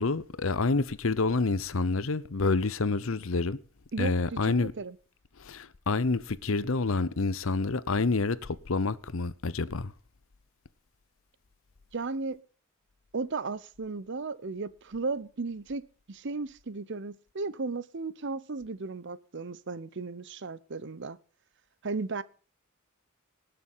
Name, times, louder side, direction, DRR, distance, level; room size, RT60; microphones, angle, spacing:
voice 1, 0.0-3.6 4.0-4.7 5.4-9.9, left 3 dB, 70° left, 0.8 m, -28 dB
voice 2, 3.9-5.0 11.9-12.4 13.1-21.2 21.8-22.2, right 3 dB, 55° right, 0.8 m, -35 dB
19.0 x 6.9 x 5.6 m
head